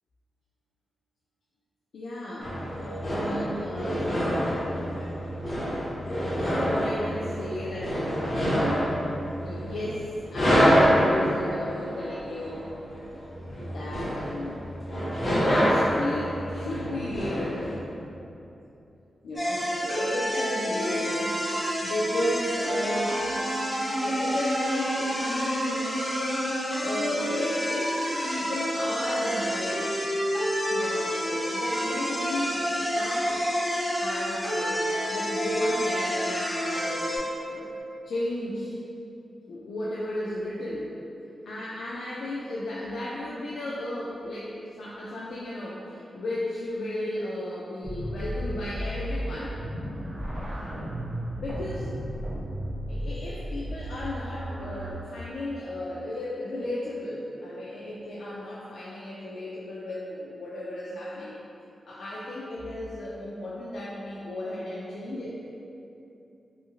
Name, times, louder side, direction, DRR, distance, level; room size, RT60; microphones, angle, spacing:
voice 1, 1.9-2.5 3.1-4.2 6.4-9.0 9.4-12.7 13.6-14.6 15.3-17.8 19.2-21.4 21.6-23.2 24.0-26.1 26.8-29.9 30.7-33.5 34.0-37.7 38.1-38.8 39.5-40.9 41.5-49.6 51.4-51.9 52.9-61.4 61.9-65.4, left 1 dB, 75° left, -7 dB, 0.3 m, -34 dB
sound 1, 2.4-17.8, equal, 35° left, 0.9 m, -27 dB
sound 2, 19.4-37.2, equal, 5° left, 0.9 m, -29 dB
sound 3, 47.8-54.9, equal, 60° right, 0.5 m, -34 dB
2.7 x 2.4 x 2.9 m, 2.8 s
wide cardioid pair, 140°, 0 cm